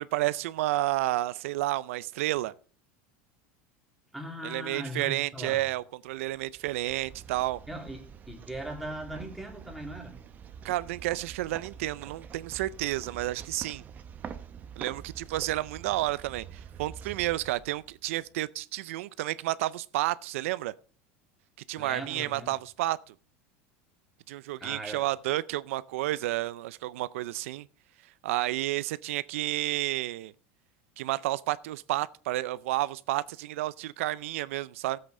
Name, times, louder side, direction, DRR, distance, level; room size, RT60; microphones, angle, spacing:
voice 1, 0.0-2.5 4.4-7.6 10.6-13.8 14.8-20.7 21.7-23.1 24.3-27.7 28.2-30.3 31.0-35.0, right 16 dB, 85° right, 0.4 m, -31 dB
voice 2, 4.1-5.6 7.7-8.0 8.3-10.2 21.8-22.5 24.6-25.0, right 1 dB, ahead, 2.2 m, -39 dB
sound 1, 6.3-18.3, right 7 dB, 25° right, 0.7 m, -46 dB
14.5 x 7.8 x 3.7 m
supercardioid pair, 155°, 7 cm